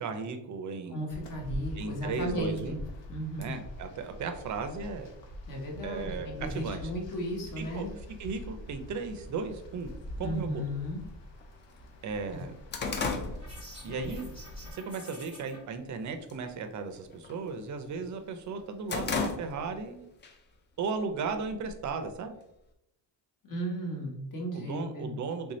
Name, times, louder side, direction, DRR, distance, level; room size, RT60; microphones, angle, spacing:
voice 1, 0.0-1.0 1.8-2.8 3.4-5.1 5.8-6.9 7.6-7.9 8.2-9.9 10.2-10.6 12.0-12.5 13.8-14.3 14.7-20.1 20.8-22.3 24.5-25.5, right 4 dB, 45° right, 7 dB, 0.5 m, -36 dB
voice 2, 0.9-2.8 3.1-3.5 5.5-7.9 10.2-11.0 12.3-12.4 13.9-14.2 23.5-25.1, equal, 50° left, 0 dB, 1.1 m, -35 dB
sound 1, 1.1-14.7, left 1 dB, 75° left, 0.9 m, -44 dB
sound 2, 9.9-10.0 10.9-11.0 11.4-11.5 11.8-14.3 14.6-15.0 15.4-15.9 16.2-16.5 16.8-18.0 18.4-19.9 20.2-20.4 21.2-22.1, left 4 dB, 30° left, 0.3 m, -35 dB
sound 3, 13.4-15.6, equal, 10° left, 1.1 m, -49 dB
3.3 x 2.7 x 3.1 m, 0.82 s
cardioid pair, 130°, 42 cm